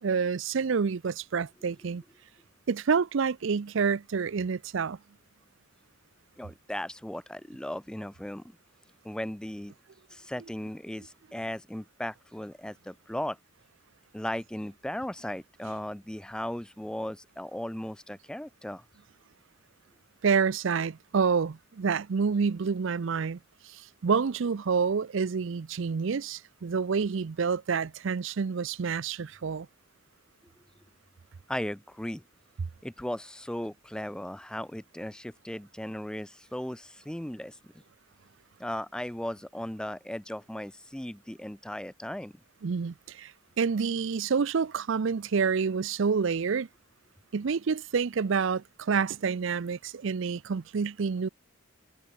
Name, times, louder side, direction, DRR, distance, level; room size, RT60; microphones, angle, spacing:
voice 1, 0.0-2.0 2.7-5.0 20.2-23.4 23.6-29.7 42.6-46.7 47.3-51.3, right 5 dB, 60° right, 0.5 m, -28 dB
voice 2, 6.4-8.4 9.0-9.7 10.1-13.4 14.1-18.8 31.5-32.2 32.8-37.7 38.6-42.3, left 1 dB, 5° left, 0.3 m, -37 dB
head